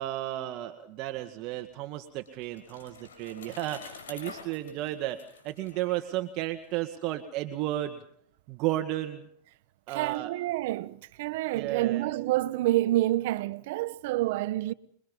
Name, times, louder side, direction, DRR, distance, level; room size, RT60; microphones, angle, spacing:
voice 1, 0.0-8.0 8.5-9.3 9.9-10.3 11.5-12.1, right 14 dB, 50° right, 2.0 m, -33 dB
Bicycle, 1.6-6.7, left 5 dB, 80° left, 7.4 m, -48 dB
voice 2, 9.9-14.7, right 16 dB, 65° right, 1.1 m, -28 dB
27.5 x 23.0 x 5.6 m
hypercardioid pair, 105°, 0 cm